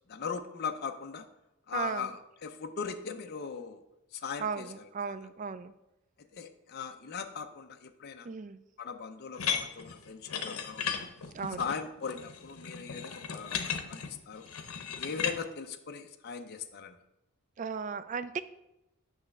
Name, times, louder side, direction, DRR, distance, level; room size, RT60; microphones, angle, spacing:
voice 1, 0.1-1.3 1.7-3.8 4.1-5.1 6.3-8.3 8.8-10.9 11.6-14.5 15.0-17.0, left 6 dB, 45° left, 6 dB, 0.5 m, -39 dB
voice 2, 1.7-2.1 4.4-5.7 8.3-8.6 11.3-11.7 17.6-18.4, right 5 dB, 35° right, 12 dB, 0.3 m, -36 dB
sound 1, 9.4-15.4, left 7 dB, 90° left, 0.8 m, -36 dB
8.4 x 3.2 x 6.4 m, 0.92 s
head